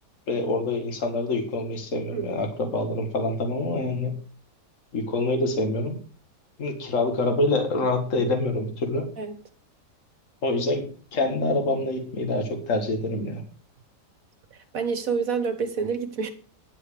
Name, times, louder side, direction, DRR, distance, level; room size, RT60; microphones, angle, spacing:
voice 1, 0.3-4.2 4.9-6.0 6.6-9.1 10.4-13.4, left 2 dB, 50° left, 2.0 m, -26 dB
voice 2, 14.5-16.3, right 5 dB, 55° right, 1.6 m, -28 dB
10.5 x 7.8 x 5.0 m
omnidirectional pair, 1.8 m